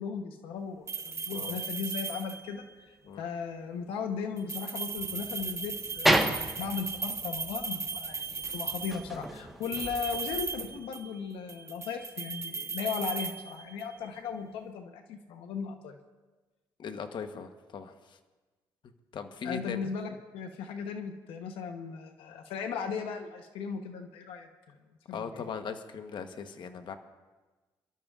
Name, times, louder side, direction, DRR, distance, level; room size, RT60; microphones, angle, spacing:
voice 1, 0.0-2.6 3.2-16.0 19.4-24.7 25.1-25.4, left 6 dB, 85° left, 5 dB, 0.9 m, -37 dB
sound 1, 0.9-2.6 4.4-9.1 9.6-11.2 11.5-14.0, right 4 dB, 30° right, 0.8 m, -37 dB
sound 2, 5.0-10.8, right 1 dB, ahead, 1.3 m, -33 dB
voice 2, 16.8-18.2 19.1-19.8 25.1-26.9, left 6 dB, 60° left, 8 dB, 1.0 m, -39 dB
27.5 x 12.0 x 2.4 m, 1.2 s
cardioid pair, 80°, 9 cm